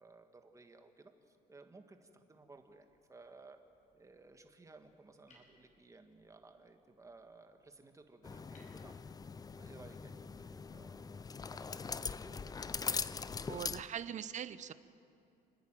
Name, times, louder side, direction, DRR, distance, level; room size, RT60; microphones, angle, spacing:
voice 1, 0.0-3.6 3.9-9.1 9.6-13.0, right 3 dB, 20° right, 6 dB, 1.8 m, -58 dB
sound 1, 2.3-10.3, left 1 dB, 45° left, 5.9 m, -72 dB
sound 2, 8.2-13.8, left 5 dB, 20° left, 0.5 m, -41 dB
voice 2, 13.5-14.7, right 9 dB, 45° right, 14 dB, 0.8 m, -41 dB
29.5 x 10.5 x 9.0 m, 2.6 s
cardioid pair, 110°, 17 cm